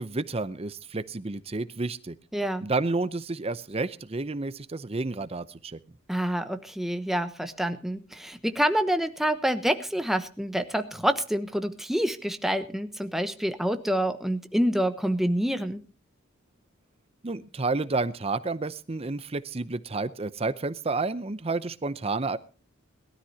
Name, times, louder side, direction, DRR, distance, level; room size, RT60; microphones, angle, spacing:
voice 1, 0.0-2.2 2.6-5.8 17.2-22.4, right 3 dB, 30° right, 13 dB, 0.6 m, -30 dB
voice 2, 2.3-2.6 6.1-15.8, equal, ahead, 8 dB, 1.1 m, -27 dB
22.0 x 13.0 x 2.8 m, 0.36 s
head